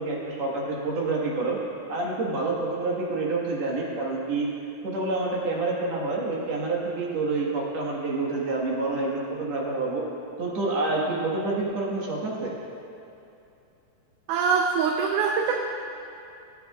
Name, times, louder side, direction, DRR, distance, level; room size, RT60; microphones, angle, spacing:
voice 1, 0.0-1.6 1.9-4.5 4.8-10.0 10.4-12.5, right 3 dB, 55° right, -4 dB, 2.5 m, -28 dB
voice 2, 14.3-15.5, right 6 dB, 80° right, 1 dB, 2.1 m, -23 dB
17.0 x 8.6 x 2.4 m, 2.7 s
omnidirectional pair, 3.9 m